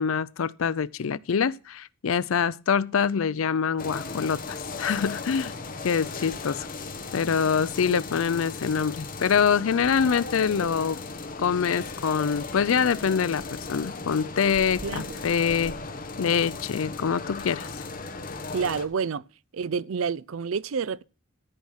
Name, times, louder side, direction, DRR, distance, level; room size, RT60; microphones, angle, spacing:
voice 1, 0.0-5.5 5.8-6.7 7.1-11.0 11.4-15.7 16.2-17.7, left 6 dB, 75° left, 0.5 m, -25 dB
sound 1, 3.8-18.9, left 3 dB, 40° left, 1.2 m, -37 dB
voice 2, 14.8-15.2 18.5-19.2 19.5-21.0, right 6 dB, 75° right, 0.5 m, -29 dB
13.0 x 5.7 x 6.3 m
head